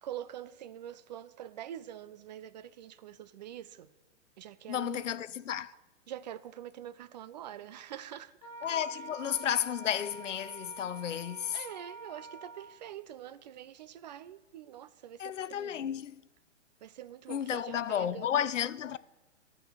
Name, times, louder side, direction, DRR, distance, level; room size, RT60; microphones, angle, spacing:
voice 1, 0.0-3.9 4.4-5.1 6.1-8.5 11.5-15.9 16.8-18.3, right 11 dB, 40° right, 0.4 m, -45 dB
voice 2, 4.7-5.7 8.6-11.6 15.2-16.2 17.3-19.0, left 10 dB, 80° left, 0.6 m, -32 dB
Wind instrument woodwind instrument, 8.4-12.8, right 3 dB, 30° left, 1.9 m, -46 dB
12.5 x 6.2 x 8.1 m
hypercardioid pair, 120°, 36 cm